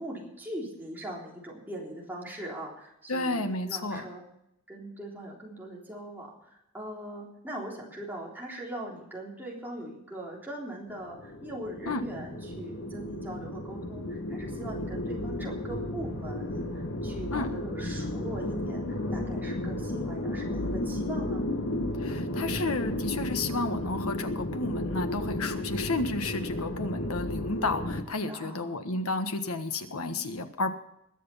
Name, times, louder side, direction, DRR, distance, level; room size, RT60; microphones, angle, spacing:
voice 1, 0.0-4.3 4.7-21.4 28.3-28.8, right 1 dB, 10° right, -3 dB, 3.6 m, -41 dB
voice 2, 3.1-4.1 11.9-12.0 17.3-17.5 22.0-30.7, left 2 dB, 90° left, 8 dB, 1.5 m, -32 dB
sound 1, 10.9-28.0, left 1 dB, 65° left, 1.5 m, -33 dB
21.0 x 7.9 x 5.7 m, 0.81 s
head